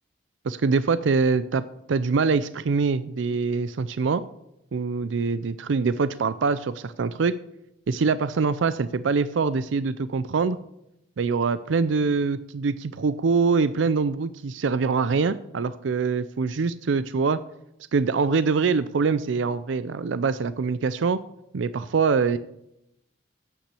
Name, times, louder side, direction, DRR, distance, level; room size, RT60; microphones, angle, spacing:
voice 1, 0.4-1.6 1.9-4.2 4.7-7.4 7.9-10.6 11.2-17.4 17.9-21.2 21.5-22.4, right 4 dB, 75° right, 14 dB, 0.4 m, -24 dB
9.0 x 8.4 x 8.2 m, 0.83 s
head